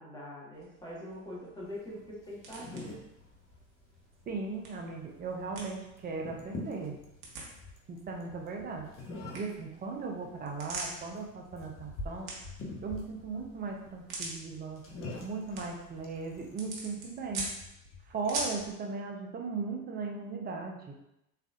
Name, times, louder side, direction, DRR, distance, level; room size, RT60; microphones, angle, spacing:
voice 1, 0.0-3.0, left 1 dB, 10° left, -6 dB, 1.5 m, -43 dB
sound 1, 0.5-18.7, right 3 dB, 50° right, 1.2 m, -45 dB
sound 2, 1.7-17.5, left 2 dB, 30° left, 1.0 m, -48 dB
Bicycle, 2.4-18.7, left 2 dB, 50° left, 0.8 m, -52 dB
voice 2, 4.3-7.0 7.9-8.9 9.3-12.3 12.8-14.8 15.2-17.5 18.1-20.9, right 4 dB, 20° right, 1 dB, 0.6 m, -37 dB
3.6 x 3.3 x 2.4 m, 0.85 s
figure-of-eight pair, 80°, 42 cm